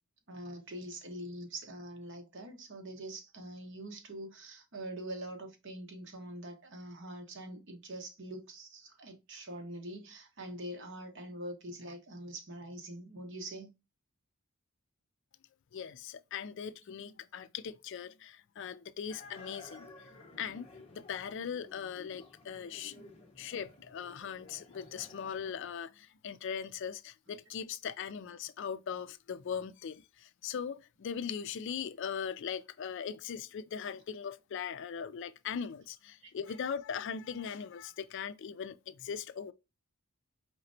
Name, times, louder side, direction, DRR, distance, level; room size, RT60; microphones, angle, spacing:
voice 1, 0.3-13.7 36.2-36.3, right 1 dB, 55° right, 1.0 m, -44 dB
voice 2, 15.7-19.9 20.4-22.9 23.4-39.5, left 7 dB, 55° left, 0.3 m, -40 dB
sound 1, 19.1-25.5, left 2 dB, 25° left, 0.9 m, -54 dB
4.8 x 3.1 x 2.6 m
head